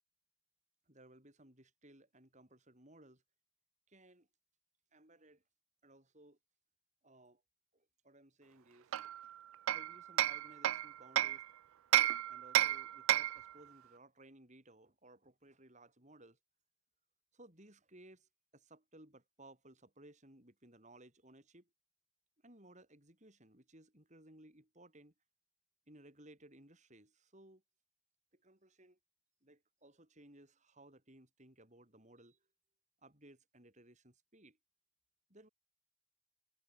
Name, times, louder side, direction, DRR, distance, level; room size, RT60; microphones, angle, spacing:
voice 1, 0.9-3.2 3.9-4.3 4.9-5.4 5.8-6.4 7.0-7.4 7.7-8.9 9.7-11.4 12.3-16.4 17.3-21.7 22.4-25.1 25.9-27.6 28.3-29.0 29.4-32.4 33.0-34.6 35.3-35.5, right 1 dB, 35° right, 6.8 m, -60 dB
Hammer, 8.9-11.4 11.9-13.5, right 13 dB, 85° right, 0.4 m, -32 dB
head